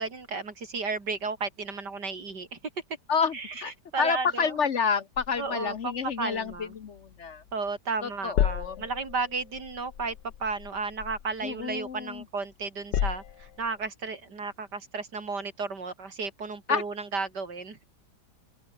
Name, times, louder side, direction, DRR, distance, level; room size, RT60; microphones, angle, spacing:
voice 1, 0.0-2.6 3.3-3.6 3.9-4.6 5.4-6.7 7.5-17.8, right 4 dB, 70° right, 3.9 m, -33 dB
voice 2, 3.1-3.7 4.0-7.4 8.0-8.8 11.4-12.2 16.7-16.8, left 6 dB, 50° left, 1.0 m, -29 dB
sound 1, 5.1-7.7 8.0-12.2 12.6-13.9, left 10 dB, 80° left, 1.7 m, -34 dB
open air
omnidirectional pair, 1.9 m